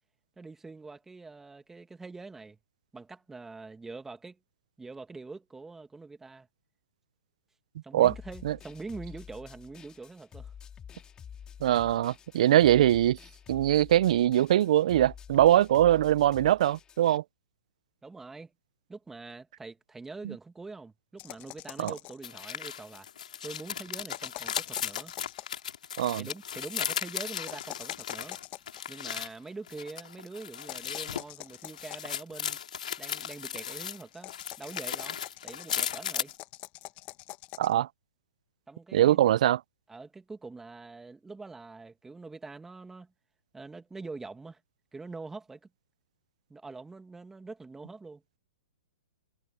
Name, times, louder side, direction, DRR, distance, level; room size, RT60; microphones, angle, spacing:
voice 1, 0.4-2.6 2.9-4.4 4.8-6.5 7.8-10.5 18.0-18.5 18.9-23.1 23.4-25.1 26.2-28.4 28.9-32.6 33.0-35.2 35.4-36.3 38.7-39.3 39.9-43.1 43.5-44.6 44.9-45.7 46.5-48.2, right 3 dB, 10° right, 2.0 m, -44 dB
sound 1, 8.0-17.2, left 8 dB, 20° left, 2.5 m, -48 dB
voice 2, 11.6-13.2 13.5-17.2 20.2-20.3 21.8-21.9 26.0-26.3 37.6-37.9 38.9-39.6, right 12 dB, 60° right, 0.5 m, -22 dB
sound 2, 21.2-22.3 24.0-25.6 27.4-28.8 30.6-32.2 34.1-37.7, left 20 dB, 35° left, 1.5 m, -45 dB
sound 3, 22.2-29.3 29.7-34.0 34.3-36.3, left 8 dB, 75° left, 2.3 m, -36 dB
hypercardioid pair, 130°, 4 cm